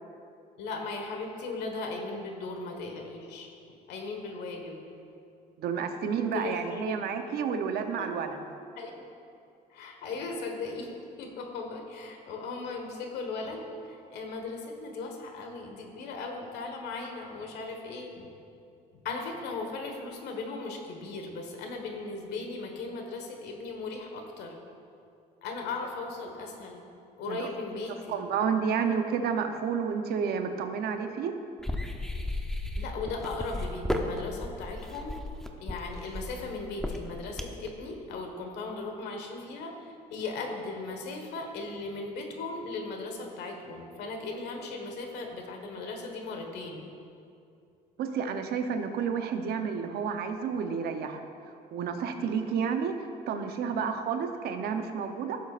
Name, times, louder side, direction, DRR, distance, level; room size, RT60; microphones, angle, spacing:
voice 1, 0.6-3.5 3.9-4.8 6.3-7.0 8.0-8.1 8.8-9.0 9.7-10.9 11.2-18.2 19.0-24.6 25.4-26.8 27.2-28.2 32.7-35.1 35.6-46.8 53.7-53.9, left 3 dB, 80° left, 3 dB, 1.5 m, -37 dB
voice 2, 5.6-8.3 27.3-27.5 28.1-31.3 48.0-51.2 51.7-53.0 53.3-55.4, right 6 dB, 70° right, 6 dB, 0.8 m, -30 dB
sound 1, 31.6-37.7, left 1 dB, 5° left, 0.8 m, -34 dB
16.0 x 7.4 x 2.5 m, 2.5 s
cardioid pair, 110°, 17 cm